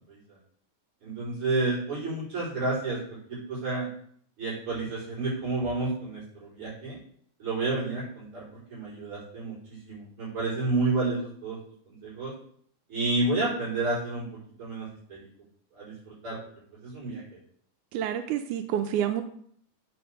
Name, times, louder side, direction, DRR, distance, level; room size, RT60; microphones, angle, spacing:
voice 1, 1.0-3.9 4.4-7.0 7.4-11.6 11.9-12.3 12.9-14.3 14.6-15.3 15.7-16.4 16.8-17.4, right 2 dB, 40° right, -8 dB, 5.5 m, -30 dB
voice 2, 17.9-19.2, right 10 dB, 90° right, 7 dB, 2.1 m, -28 dB
7.9 x 5.5 x 6.5 m, 0.62 s
omnidirectional pair, 3.5 m